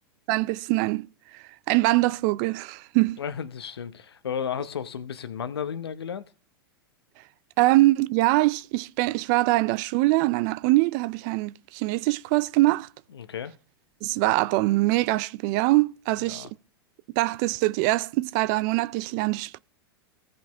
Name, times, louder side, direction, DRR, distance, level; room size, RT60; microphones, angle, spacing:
voice 1, 0.3-1.1 1.3-3.2 7.6-12.9 14.0-16.5 17.2-19.6, right 20 dB, 50° right, 0.4 m, -23 dB
voice 2, 3.2-6.3 13.1-13.5 16.3-16.5, left 8 dB, 85° left, 0.8 m, -33 dB
16.0 x 5.3 x 3.5 m
hypercardioid pair, 105°, 13 cm